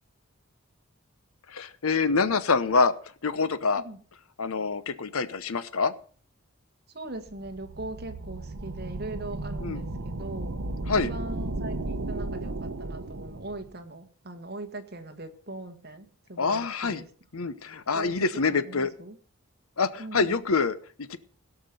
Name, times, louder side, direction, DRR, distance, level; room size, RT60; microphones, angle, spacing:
voice 1, 1.5-2.9 3.2-3.8 4.4-5.9 9.6-9.8 10.9-11.1 16.4-17.0 17.3-18.9 19.8-21.2, left 4 dB, 80° left, 14 dB, 0.9 m, -26 dB
voice 2, 6.9-10.6 11.0-17.1 17.9-19.2 20.0-20.4, right 2 dB, 45° right, 6 dB, 1.4 m, -40 dB
sound 1, 7.2-13.7, right 2 dB, 70° right, 0.9 m, -34 dB
17.0 x 6.0 x 6.7 m, 0.44 s
head